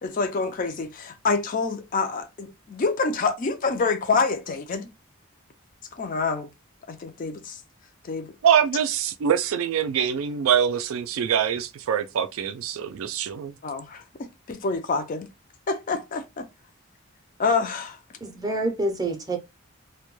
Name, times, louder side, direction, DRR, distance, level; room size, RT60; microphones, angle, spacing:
voice 1, 0.0-4.9 5.9-6.5 6.9-7.6 8.0-8.3 13.6-15.3 15.7-16.5 17.4-18.0, left 4 dB, 40° left, 0.4 m, -27 dB
voice 2, 8.4-13.5, right 8 dB, 80° right, 0.3 m, -24 dB
voice 3, 18.2-19.4, right 2 dB, 15° right, 0.5 m, -27 dB
2.2 x 2.1 x 3.0 m
head